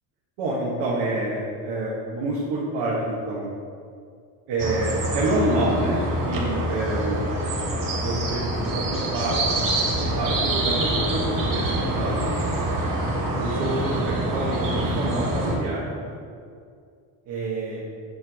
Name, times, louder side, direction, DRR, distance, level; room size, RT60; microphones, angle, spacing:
voice 1, 0.4-3.5 4.5-7.2 8.0-9.5 10.0-12.3 13.4-16.2 17.3-17.8, right 2 dB, 85° right, -6 dB, 1.5 m, -27 dB
sound 1, 4.6-15.6, right 1 dB, 50° right, 1.9 m, -25 dB
8.0 x 6.2 x 3.7 m, 2.2 s
cardioid pair, 100°, 42 cm